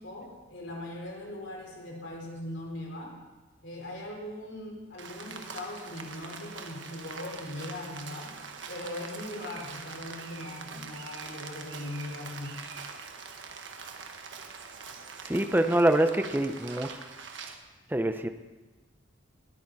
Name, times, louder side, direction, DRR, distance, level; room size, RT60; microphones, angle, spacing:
voice 1, 0.0-3.2 3.6-8.4 8.7-12.7, left 1 dB, 65° left, -1 dB, 4.3 m, -40 dB
Rain, 5.0-17.5, right 5 dB, 65° right, 1.4 m, -43 dB
voice 2, 15.2-16.9 17.9-18.3, right 1 dB, 10° right, 8 dB, 0.7 m, -25 dB
21.0 x 13.5 x 4.2 m, 1.2 s
head